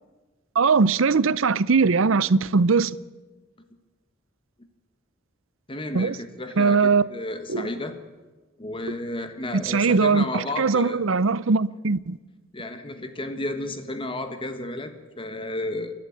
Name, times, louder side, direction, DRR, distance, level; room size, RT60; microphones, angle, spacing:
voice 1, 0.6-3.0 5.9-6.2 6.6-7.1 7.5-7.7 9.6-12.2, right 4 dB, 70° right, 0.6 m, -20 dB
voice 2, 5.7-8.0 8.6-11.0 12.5-15.9, left 2 dB, 25° left, 1.4 m, -32 dB
28.0 x 12.0 x 8.7 m
head